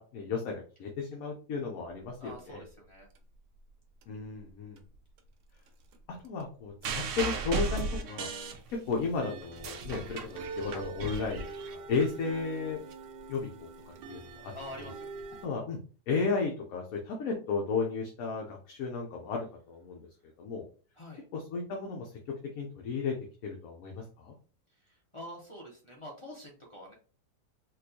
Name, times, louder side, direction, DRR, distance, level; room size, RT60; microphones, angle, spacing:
voice 1, 0.0-2.6 4.1-4.8 6.1-8.3 8.7-10.2 10.5-12.8 13.3-13.7 14.1-14.5 14.8-14.9 15.4-15.8 16.1-20.0 20.4-20.6 21.3-23.2 23.4-24.3, left 4 dB, 65° left, 0 dB, 1.1 m, -34 dB
sound 1, 2.1-3.7 4.0-4.5 4.8-15.5, right 3 dB, 85° right, 1.2 m, -45 dB
voice 2, 2.2-3.1 14.5-15.1 21.0-21.2 24.8-26.9, equal, 30° left, -2 dB, 0.5 m, -46 dB
sound 2, 6.8-9.1 9.4-12.0 12.9-13.0, right 3 dB, 65° right, 0.8 m, -35 dB
4.2 x 2.4 x 2.7 m, 0.38 s
omnidirectional pair, 1.8 m